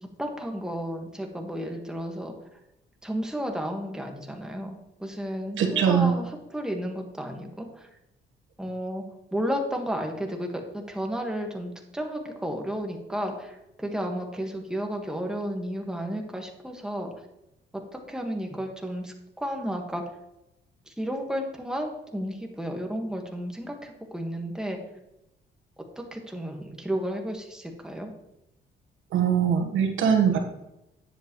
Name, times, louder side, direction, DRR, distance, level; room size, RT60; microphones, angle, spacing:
voice 1, 0.0-2.3 3.0-7.9 8.6-9.0 9.3-17.1 17.7-20.1 20.9-24.8 25.8-28.1, equal, 5° right, 2 dB, 1.6 m, -33 dB
voice 2, 5.6-6.1 29.1-30.4, right 7 dB, 80° right, 4 dB, 1.4 m, -22 dB
10.0 x 7.8 x 3.1 m, 0.87 s
cardioid pair, 90°, 20 cm